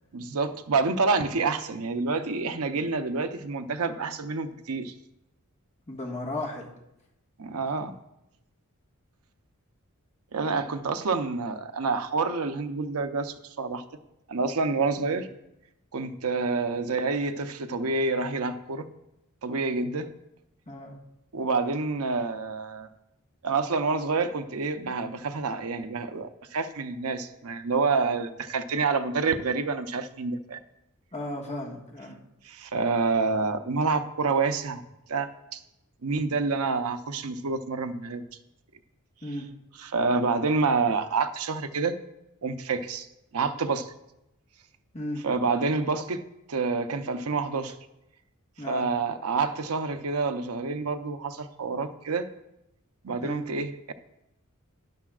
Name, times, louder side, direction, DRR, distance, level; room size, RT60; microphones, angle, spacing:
voice 1, 0.1-4.9 7.4-7.9 10.3-13.8 14.3-15.3 15.9-18.9 19.4-20.1 21.3-22.9 23.4-30.6 32.4-34.8 35.1-35.6 36.0-38.2 39.8-41.9 42.4-43.1 43.3-43.9 45.2-46.2 46.5-47.7 48.7-52.3 53.0-53.9, right 4 dB, 80° right, 8 dB, 0.7 m, -28 dB
voice 2, 5.9-6.7 15.0-15.2 20.7-21.0 31.1-32.2 39.2-39.5 44.9-45.2 48.6-48.9 53.2-53.4, left 1 dB, 30° left, -1 dB, 1.6 m, -35 dB
12.0 x 10.5 x 2.5 m, 0.87 s
head